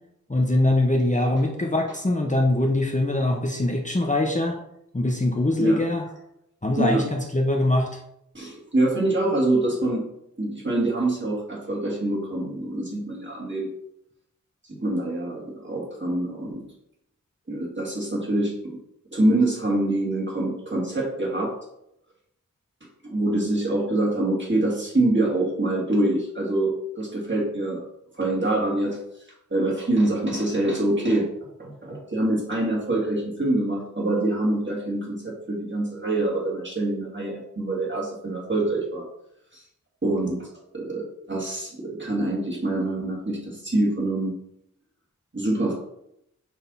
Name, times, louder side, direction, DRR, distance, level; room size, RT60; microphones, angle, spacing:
voice 1, 0.3-4.6 4.9-6.0 6.6-8.0, left 1 dB, 25° left, 1 dB, 0.9 m, -23 dB
voice 2, 8.3-10.0 10.4-13.7 14.7-16.6 17.5-18.8 19.1-21.5 23.0-27.8 28.2-29.0 29.5-31.2 31.6-39.0 39.5-39.6 40.0-40.5 40.7-44.3 45.3-45.7, right 2 dB, 35° right, -4 dB, 2.6 m, -25 dB
6.1 x 3.4 x 5.6 m, 0.78 s
wide cardioid pair, 50°, 32 cm